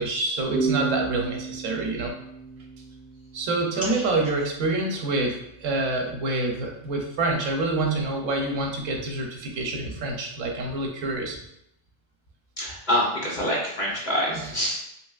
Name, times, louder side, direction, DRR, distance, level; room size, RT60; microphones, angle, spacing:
voice 1, 0.0-2.1 3.3-11.4 14.3-14.4, right 2 dB, 85° right, 1 dB, 1.0 m, -27 dB
sound 1, 0.5-4.0, right 4 dB, 60° right, 0.6 m, -32 dB
voice 2, 12.6-14.8, equal, 45° left, -4 dB, 0.7 m, -26 dB
3.2 x 2.7 x 2.3 m, 0.76 s
omnidirectional pair, 1.3 m